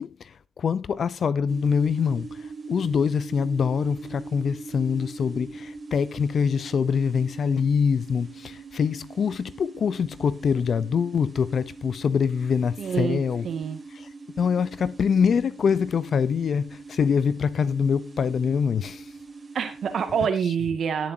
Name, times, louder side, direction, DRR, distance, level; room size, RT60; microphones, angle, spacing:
voice 1, 0.0-13.4 14.4-19.0, left 6 dB, 55° left, 0.7 m, -24 dB
sound 1, 1.5-20.3, right 4 dB, 35° right, 2.8 m, -42 dB
voice 2, 12.8-13.8 19.5-21.1, right 7 dB, 65° right, 2.1 m, -27 dB
17.5 x 7.4 x 2.9 m
cardioid pair, 80°, 0 cm